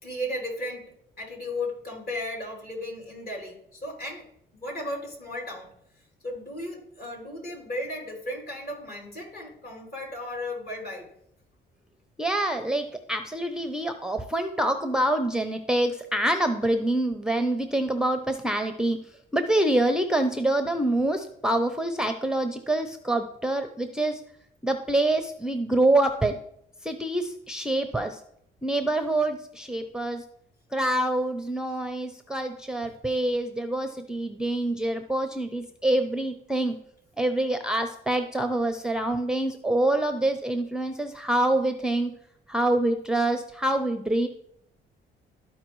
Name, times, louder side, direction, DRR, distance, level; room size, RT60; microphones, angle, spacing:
voice 1, 0.0-0.9 1.2-4.3 4.5-5.7 6.2-11.1 37.4-37.5, left 1 dB, 50° left, -1 dB, 3.1 m, -35 dB
voice 2, 12.2-19.0 19.3-24.2 24.6-26.4 26.8-28.2 28.6-30.2 30.7-36.8 37.2-42.1 42.5-44.3, right 1 dB, 5° right, 7 dB, 0.6 m, -26 dB
13.0 x 4.6 x 3.1 m, 0.71 s
cardioid pair, 90°, 20 cm